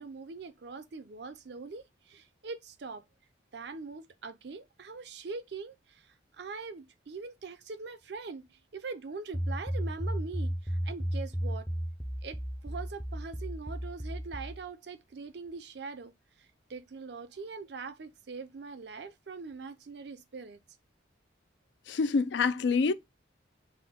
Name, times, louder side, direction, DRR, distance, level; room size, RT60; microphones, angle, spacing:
voice 1, 0.0-3.0 3.5-11.7 12.2-16.1 16.4-20.6, right 4 dB, 60° right, 0.5 m, -42 dB
sound 1, 9.3-14.6, equal, ahead, 0.5 m, -34 dB
voice 2, 21.9-22.9, left 4 dB, 65° left, 0.4 m, -26 dB
5.7 x 2.1 x 3.6 m
head